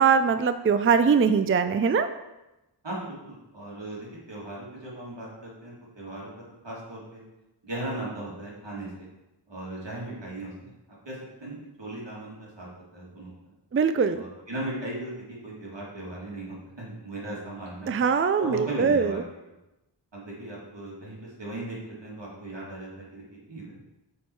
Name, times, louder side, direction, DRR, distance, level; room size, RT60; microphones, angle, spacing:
voice 1, 0.0-2.1 13.7-14.2 17.9-19.2, right 6 dB, 30° right, 10 dB, 0.4 m, -22 dB
voice 2, 2.8-6.3 6.6-7.2 7.6-9.1 9.5-10.7 11.1-13.5 14.1-18.0 18.4-19.2 20.1-23.8, right 1 dB, 85° right, -5 dB, 2.5 m, -37 dB
8.4 x 4.6 x 4.6 m, 0.97 s
wide cardioid pair, 70°, 43 cm